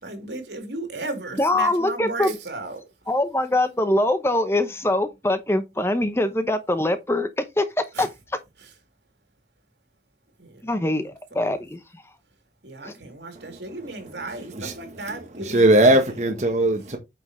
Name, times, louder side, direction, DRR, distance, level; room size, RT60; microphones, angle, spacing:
voice 1, 0.0-2.8 7.9-8.1 10.4-11.1 12.6-16.0, right 2 dB, 75° right, 3.2 m, -35 dB
voice 2, 1.4-2.3 3.1-8.1 10.6-11.8 12.8-12.9, left 1 dB, 15° left, 0.8 m, -23 dB
voice 3, 15.1-17.0, right 1 dB, 40° right, 1.2 m, -19 dB
8.9 x 5.9 x 3.2 m
head